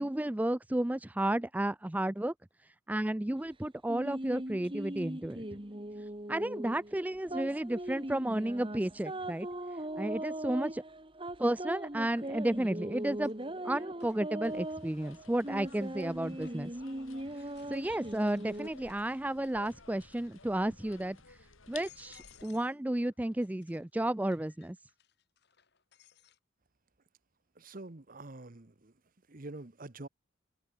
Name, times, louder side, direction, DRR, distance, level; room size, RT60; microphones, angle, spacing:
voice 1, 0.0-2.3 2.9-5.4 6.3-9.5 10.0-10.8 11.4-13.3 13.6-16.7 17.4-21.4 21.7-24.8, right 1 dB, 10° right, 0.4 m, -32 dB
sound 1, 3.9-18.7, right 1 dB, 25° right, 2.4 m, -40 dB
sound 2, 10.4-10.5 12.2-12.6 13.0-16.8 17.3-19.9 20.2-20.7 21.2-21.3 21.7-22.8 23.0-26.4, left 9 dB, 55° left, 5.5 m, -64 dB
sound 3, 14.4-22.5, left 5 dB, 80° left, 4.5 m, -55 dB
voice 2, 27.6-28.9 29.3-30.1, right 2 dB, 40° right, 1.1 m, -46 dB
head